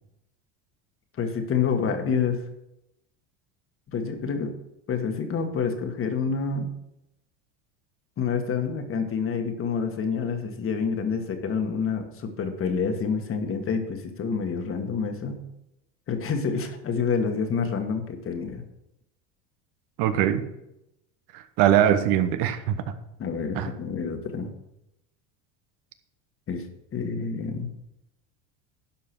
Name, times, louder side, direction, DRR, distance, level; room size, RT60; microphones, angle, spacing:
voice 1, 1.2-2.4 3.9-4.5 4.9-6.7 8.2-15.4 16.1-18.6 23.2-24.5 26.5-26.7 26.9-27.7, left 5 dB, 35° left, 6 dB, 1.5 m, -28 dB
voice 2, 20.0-20.4 21.3-22.8 23.5-23.7, right 10 dB, 60° right, 10 dB, 1.2 m, -22 dB
11.5 x 5.4 x 6.0 m, 0.86 s
supercardioid pair, 100°, 37 cm